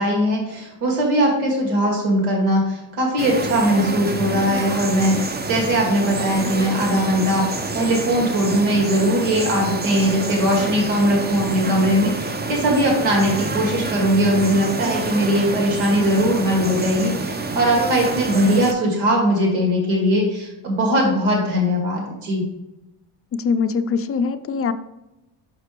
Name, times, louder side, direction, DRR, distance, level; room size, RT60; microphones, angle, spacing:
voice 1, 0.0-22.5, equal, 85° right, -1 dB, 2.0 m, -20 dB
sound 1, 3.2-18.7, right 3 dB, 20° right, 0.7 m, -27 dB
voice 2, 23.3-24.7, left 5 dB, 30° left, 11 dB, 0.4 m, -22 dB
6.0 x 5.8 x 3.0 m, 0.96 s
supercardioid pair, 80°, 50 cm